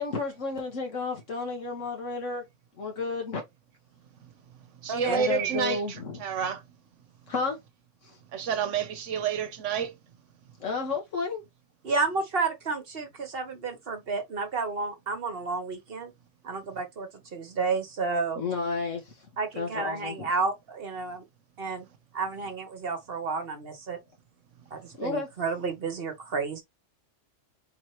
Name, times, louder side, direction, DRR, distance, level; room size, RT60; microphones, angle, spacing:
voice 1, 0.0-2.4 2.8-3.4 5.1-6.2 7.3-7.6 8.0-8.2 10.6-11.4 18.4-19.3 19.6-20.3 25.0-25.3, left 4 dB, 75° left, 1.5 m, -32 dB
voice 2, 4.8-6.6 8.3-9.9, right 7 dB, 70° right, 1.1 m, -29 dB
voice 3, 11.8-16.1 16.4-18.4 19.4-21.2 21.6-21.9 22.1-24.0 24.7-26.6, right 4 dB, 50° right, 1.2 m, -31 dB
4.4 x 3.8 x 3.0 m
omnidirectional pair, 1.3 m